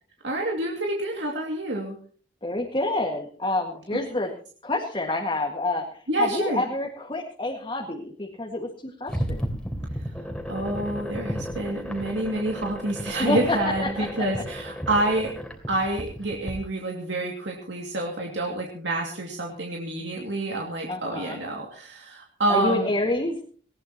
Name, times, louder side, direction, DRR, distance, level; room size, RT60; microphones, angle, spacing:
voice 1, 0.2-2.0 6.1-6.6 10.5-15.3 15.7-22.9, right 1 dB, 70° right, 0 dB, 2.5 m, -28 dB
voice 2, 2.4-4.3 4.6-5.8 6.2-9.4 13.2-14.1 20.9-21.4 22.5-23.4, left 2 dB, 25° left, 0 dB, 2.0 m, -28 dB
sound 1, 9.1-16.5, equal, 5° left, 2.9 m, -33 dB
19.5 x 18.5 x 3.0 m, 0.44 s
head